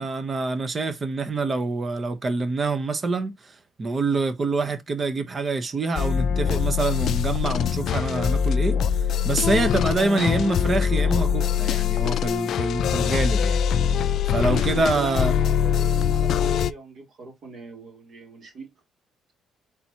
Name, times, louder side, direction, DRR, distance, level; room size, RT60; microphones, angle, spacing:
voice 1, 0.0-13.6 14.3-15.3, right 3 dB, 35° right, 1.1 m, -26 dB
sound 1, 6.0-16.7, left 8 dB, 70° left, 0.3 m, -23 dB
voice 2, 14.3-18.7, right 3 dB, 60° right, 2.8 m, -39 dB
4.3 x 4.0 x 2.9 m
cardioid pair, 80°, 0 cm